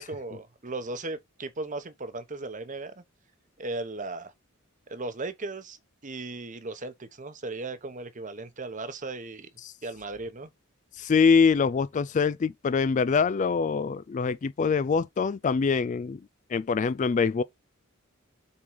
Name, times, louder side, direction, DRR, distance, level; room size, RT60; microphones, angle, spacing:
voice 1, 0.0-3.0 3.6-4.3 4.9-5.8 6.0-9.5 9.8-10.5, right 2 dB, 40° right, 1.0 m, -36 dB
voice 2, 11.0-16.2 16.5-17.4, left 5 dB, 35° left, 0.3 m, -24 dB
7.1 x 3.9 x 4.7 m
head